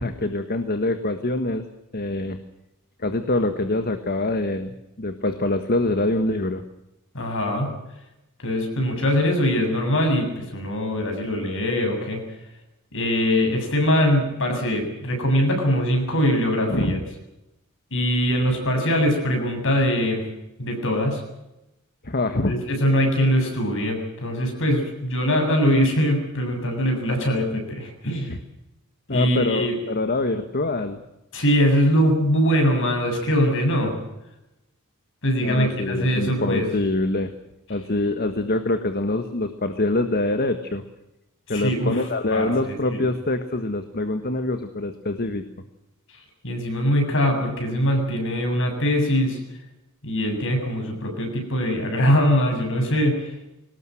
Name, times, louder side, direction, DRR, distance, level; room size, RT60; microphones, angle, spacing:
voice 1, 0.0-1.6 1.9-2.4 3.0-6.6 16.7-17.0 22.0-22.5 28.3-28.4 29.1-31.0 35.4-37.3 37.7-40.8 41.5-45.4, left 2 dB, 45° left, 8 dB, 1.5 m, -25 dB
voice 2, 7.1-7.7 8.4-12.2 12.9-17.0 17.9-20.2 20.6-21.2 22.5-28.3 29.1-29.8 31.3-34.0 35.2-36.7 41.5-42.0 42.3-43.0 46.4-49.4 50.0-53.3, equal, 60° left, 4 dB, 7.4 m, -22 dB
23.0 x 19.5 x 7.7 m, 0.91 s
head